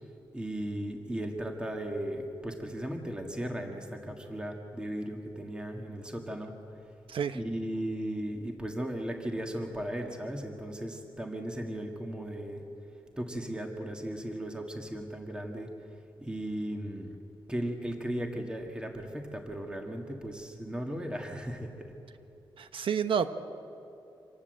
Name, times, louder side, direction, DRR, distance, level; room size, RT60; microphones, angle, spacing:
voice 1, 0.3-6.5 7.3-12.6 13.2-15.7 16.2-17.1 17.5-21.9, right 1 dB, 10° right, 2 dB, 1.8 m, -36 dB
voice 2, 22.6-23.3, right 7 dB, 80° right, 10 dB, 1.0 m, -29 dB
26.0 x 18.5 x 7.7 m, 2.9 s
wide cardioid pair, 160°, 9 cm